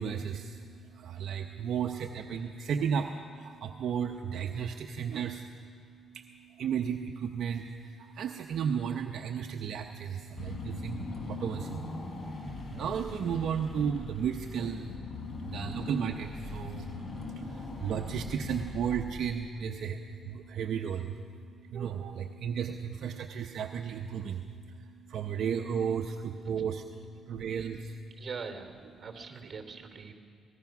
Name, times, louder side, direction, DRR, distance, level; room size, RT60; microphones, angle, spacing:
voice 1, 0.0-28.1, right 7 dB, 70° right, 4 dB, 0.8 m, -34 dB
Car / Engine, 10.4-19.5, left 3 dB, 40° left, 3.7 m, -40 dB
voice 2, 28.1-30.1, right 5 dB, 40° right, 5 dB, 3.0 m, -42 dB
24.0 x 19.0 x 6.0 m, 2.2 s
cardioid pair, 90°, 0 cm